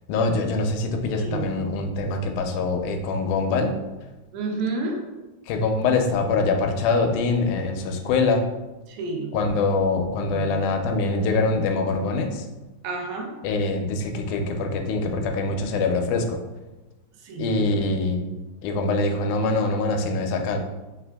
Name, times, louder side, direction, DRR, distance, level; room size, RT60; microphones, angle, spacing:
voice 1, 0.1-3.8 5.5-8.5 9.3-12.5 13.4-16.4 17.4-18.3 18.6-20.6, left 3 dB, 85° left, 5 dB, 2.0 m, -24 dB
voice 2, 1.0-1.5 4.3-5.0 8.9-9.3 10.3-10.5 12.8-13.3 17.2-17.5, right 3 dB, 80° right, 1 dB, 2.0 m, -30 dB
4.7 x 3.4 x 2.2 m, 1.1 s
omnidirectional pair, 3.5 m